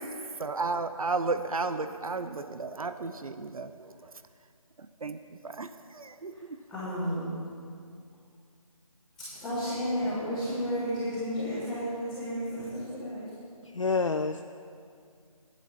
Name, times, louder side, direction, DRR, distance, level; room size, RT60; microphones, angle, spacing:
voice 1, 0.0-4.2 4.8-6.6, right 3 dB, 70° right, 10 dB, 0.6 m, -34 dB
voice 2, 6.7-7.2 9.3-13.2, equal, 5° left, -19 dB, 1.4 m, -32 dB
voice 3, 13.6-14.4, left 4 dB, 55° left, 7 dB, 0.5 m, -28 dB
12.0 x 11.0 x 5.6 m, 2.3 s
figure-of-eight pair, 175°, 19 cm